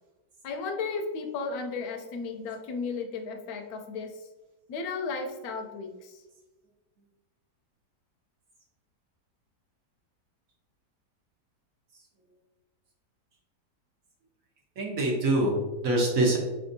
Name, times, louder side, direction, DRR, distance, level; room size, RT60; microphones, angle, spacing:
voice 1, 0.4-4.1 4.7-6.2, left 4 dB, 70° left, 5 dB, 1.0 m, -34 dB
voice 2, 14.8-16.4, right 1 dB, 55° right, -1 dB, 1.2 m, -25 dB
5.4 x 3.5 x 2.6 m, 1.1 s
omnidirectional pair, 1.8 m